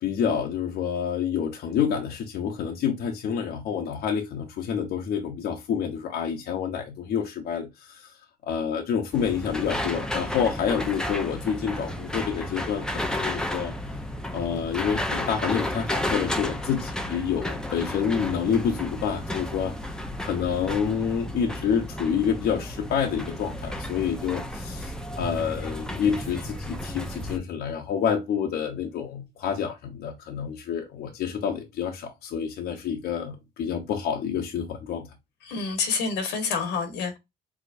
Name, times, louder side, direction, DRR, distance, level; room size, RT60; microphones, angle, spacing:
voice 1, 0.0-8.1 8.4-13.7 14.3-19.7 20.2-35.1, left 7 dB, 70° left, 1.1 m, -28 dB
sound 1, 9.1-27.4, left 1 dB, 5° left, 0.7 m, -32 dB
voice 2, 35.5-37.2, left 5 dB, 90° left, 1.6 m, -28 dB
4.9 x 3.7 x 2.7 m
cardioid pair, 110°, 17 cm